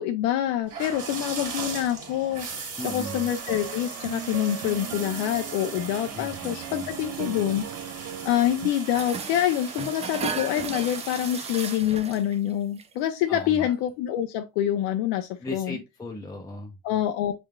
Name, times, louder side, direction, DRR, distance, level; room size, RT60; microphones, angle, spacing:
voice 1, 0.0-7.7 8.2-15.8 16.8-17.3, left 11 dB, 75° left, 0.7 m, -26 dB
sound 1, 0.6-11.8, right 4 dB, 35° right, 1.7 m, -38 dB
voice 2, 2.8-3.3 6.1-6.9 13.3-13.7 15.4-17.0, left 1 dB, 10° left, 0.7 m, -37 dB
sound 2, 2.9-8.7, right 12 dB, 70° right, 0.7 m, -39 dB
sound 3, 8.9-12.5 12.8-13.1 13.4-13.5, right 5 dB, 15° right, 0.3 m, -35 dB
6.2 x 3.5 x 2.3 m
cardioid pair, 125°, 41 cm